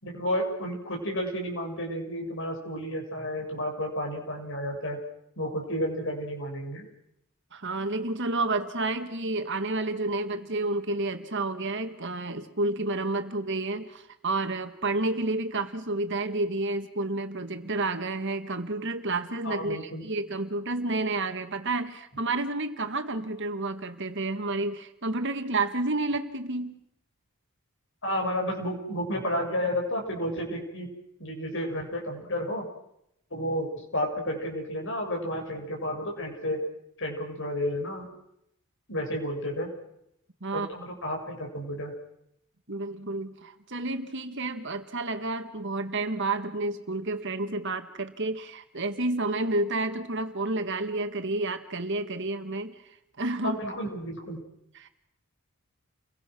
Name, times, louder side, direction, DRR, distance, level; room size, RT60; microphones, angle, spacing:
voice 1, 0.0-5.0 5.4-6.9 19.4-20.1 28.0-30.9 31.2-32.7 33.3-36.6 37.0-38.1 38.9-39.7 40.5-41.9 53.4-54.4, equal, 60° left, 2 dB, 6.7 m, -31 dB
voice 2, 7.5-26.8 40.4-40.7 42.7-52.8 53.2-53.6 54.8-54.9, right 2 dB, 55° right, 7 dB, 1.9 m, -30 dB
30.0 x 23.0 x 6.3 m, 0.78 s
head